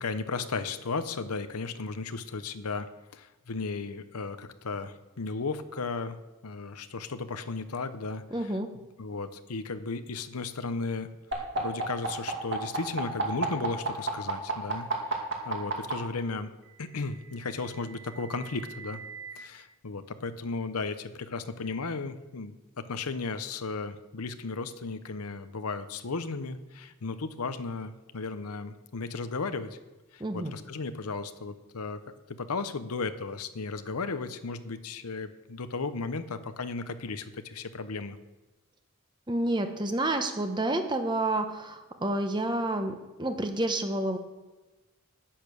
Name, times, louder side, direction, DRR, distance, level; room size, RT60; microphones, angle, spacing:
voice 1, 0.0-6.2 6.4-8.5 9.0-11.1 11.3-16.5 16.8-19.0 19.4-22.6 22.9-29.7 30.1-32.0 32.4-38.2, left 4 dB, 90° left, 11 dB, 0.8 m, -35 dB
voice 2, 8.3-8.7 30.2-30.5 39.3-44.2, right 1 dB, 20° right, 6 dB, 0.9 m, -29 dB
sound 1, 11.3-15.9 17.1-19.3, right 4 dB, 55° right, 2.2 m, -33 dB
10.0 x 9.0 x 6.3 m, 1.1 s
head